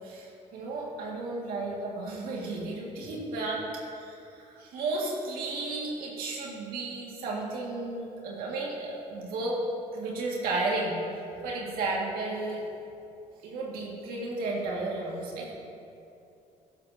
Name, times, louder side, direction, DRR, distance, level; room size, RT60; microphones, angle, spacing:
voice 1, 0.0-3.6 3.9-9.6 9.9-12.6 13.4-15.5, right 2 dB, 85° right, -3 dB, 2.0 m, -33 dB
12.5 x 11.0 x 2.8 m, 2.7 s
cardioid pair, 90°, 15 cm